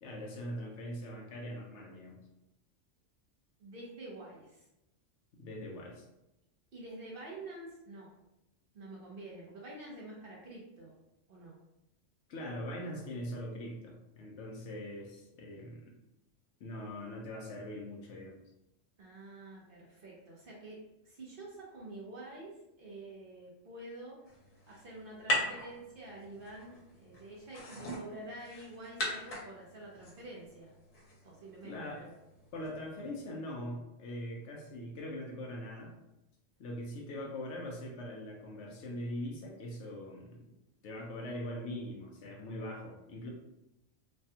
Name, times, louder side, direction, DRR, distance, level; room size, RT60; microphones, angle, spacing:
voice 1, 0.0-2.2 5.4-6.1 12.3-16.0 16.6-18.4 31.6-32.0 32.5-35.9 36.6-40.4 40.8-43.3, left 1 dB, 70° left, 0 dB, 0.9 m, -42 dB
voice 2, 3.6-4.6 6.7-8.1 8.7-10.9 11.3-11.6 19.0-24.2 24.7-30.7 31.2-32.1, right 2 dB, 50° right, -4 dB, 0.8 m, -48 dB
sound 1, 24.3-33.3, equal, 85° left, 1.2 m, -41 dB
3.2 x 2.2 x 2.7 m, 0.89 s
omnidirectional pair, 1.3 m